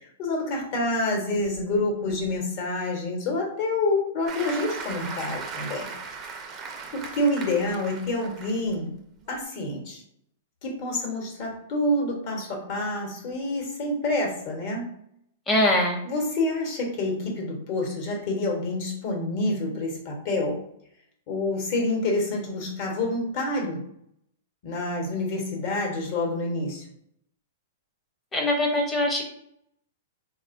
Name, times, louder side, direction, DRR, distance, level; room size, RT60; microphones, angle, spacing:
voice 1, 0.2-5.9 6.9-8.9 9.3-10.0 10.6-14.9 16.0-20.6 21.3-23.8 24.6-26.8, left 2 dB, 50° left, 0 dB, 1.1 m, -27 dB
Applause, 4.3-8.7 9.2-9.4, right 5 dB, 25° right, 0.5 m, -37 dB
voice 2, 15.5-16.0 28.3-29.3, left 1 dB, 15° left, 0 dB, 0.8 m, -22 dB
3.4 x 2.3 x 2.5 m, 0.73 s
hypercardioid pair, 140°, 0 cm